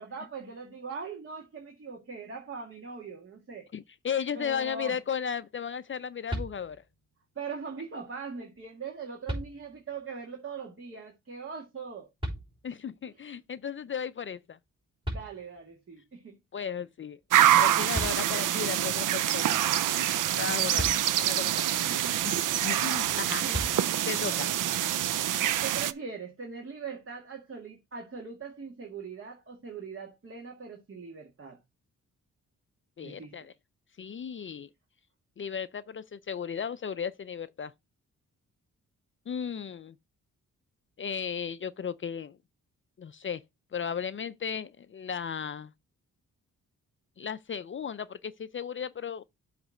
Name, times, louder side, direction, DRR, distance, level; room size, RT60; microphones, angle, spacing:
voice 1, 0.0-3.7 4.3-5.0 7.4-12.1 15.1-16.3 21.9-22.2 23.4-24.0 25.6-31.6 33.0-33.4, right 5 dB, 40° right, 1.9 m, -41 dB
voice 2, 3.7-6.8 12.6-14.6 16.5-17.2 17.5-19.6 20.4-21.5 22.0-22.3 22.6-23.8 24.0-24.5 33.0-33.5 34.0-34.7 35.4-37.7 39.3-40.0 41.0-42.4 43.0-43.4 43.7-45.7 47.2-49.2, left 7 dB, 40° left, 0.5 m, -35 dB
sound 1, 6.3-7.1 8.6-8.7 9.3-10.0 12.2-13.0 14.7-14.8 15.0-15.9 17.6-17.7 17.9-18.7 20.8-21.6 23.5-24.3, equal, 15° right, 3.5 m, -37 dB
sound 2, 17.3-25.9, right 11 dB, 75° right, 0.5 m, -26 dB
7.8 x 3.3 x 6.3 m
cardioid pair, 95°, 32 cm